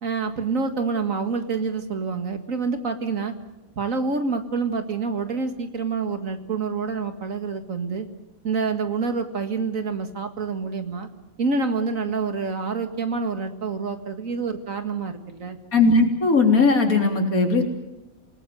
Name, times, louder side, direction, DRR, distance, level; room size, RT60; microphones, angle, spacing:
voice 1, 0.0-3.3 3.8-8.1 8.4-11.1 11.4-15.6, right 4 dB, 65° right, 8 dB, 2.3 m, -27 dB
voice 2, 15.7-17.6, left 3 dB, 70° left, 3 dB, 4.0 m, -18 dB
28.0 x 19.0 x 8.0 m, 0.99 s
omnidirectional pair, 1.5 m